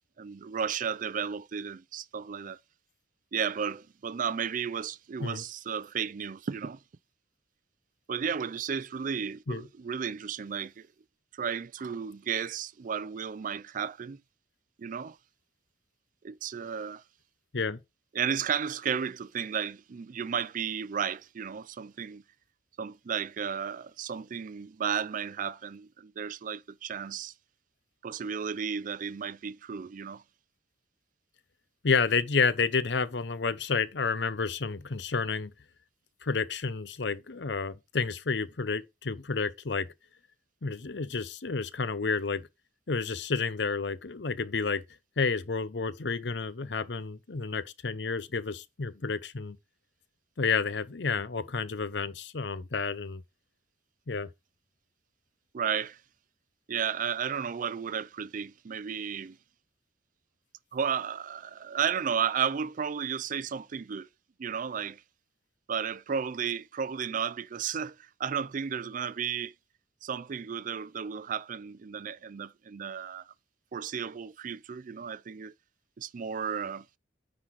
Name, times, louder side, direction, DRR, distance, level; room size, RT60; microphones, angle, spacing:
voice 1, 0.2-2.6 3.3-6.8 8.1-10.9 11.3-14.2 14.8-15.2 16.2-17.0 18.1-22.2 22.8-27.3 28.0-30.2 55.5-56.0 56.7-59.4 60.7-64.1 64.4-65.0 65.7-69.5 70.0-73.3 73.7-75.5 76.0-76.9, right 7 dB, 45° right, 0.4 m, -33 dB
voice 2, 31.8-35.5 36.2-39.9 40.6-42.5 42.9-44.8 45.2-49.6 50.4-53.2 54.1-54.3, left 4 dB, 70° left, 0.7 m, -30 dB
9.6 x 4.0 x 4.7 m
head